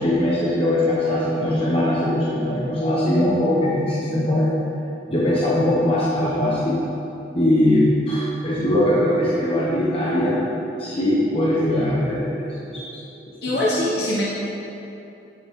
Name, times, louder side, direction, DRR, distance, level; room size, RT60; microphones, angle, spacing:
voice 1, 0.0-4.5 5.1-6.8 7.3-10.4 10.8-12.8 13.5-13.6, left 1 dB, 30° left, -7 dB, 1.0 m, -21 dB
voice 2, 13.4-14.2, left 1 dB, 60° left, -7 dB, 1.2 m, -22 dB
9.9 x 7.0 x 3.7 m, 2.8 s
head